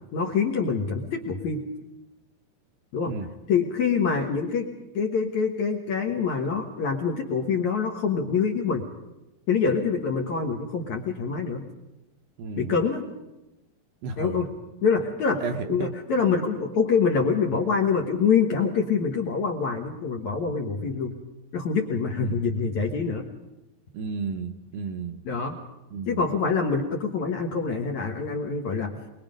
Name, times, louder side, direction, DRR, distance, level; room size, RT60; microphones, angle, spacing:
voice 1, 0.1-1.6 2.9-3.1 3.5-4.7 4.9-8.9 9.5-11.7 12.6-13.0 14.2-14.5 14.8-15.4 15.7-21.2 21.5-23.3 25.3-25.5 26.1-29.0, left 5 dB, 60° left, 1 dB, 2.1 m, -25 dB
voice 2, 12.4-12.7 14.0-14.4 15.4-15.9 22.2-22.4 23.9-25.2 25.9-26.2, right 4 dB, 75° right, 5 dB, 2.3 m, -32 dB
23.0 x 22.0 x 5.2 m, 0.98 s
omnidirectional pair, 4.8 m